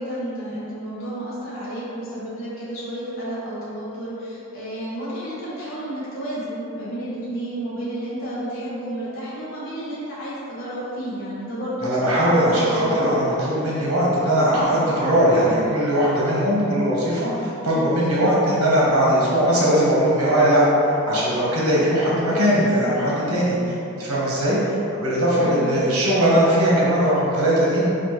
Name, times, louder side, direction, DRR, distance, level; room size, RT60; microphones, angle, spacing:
voice 1, 0.0-13.0 17.7-18.0 25.4-25.8, right 1 dB, 65° left, -9 dB, 0.8 m, -31 dB
voice 2, 11.8-20.6 21.0-23.6 24.0-24.6 24.9-27.8, equal, 80° right, -6 dB, 1.0 m, -19 dB
4.3 x 2.5 x 3.0 m, 2.8 s
head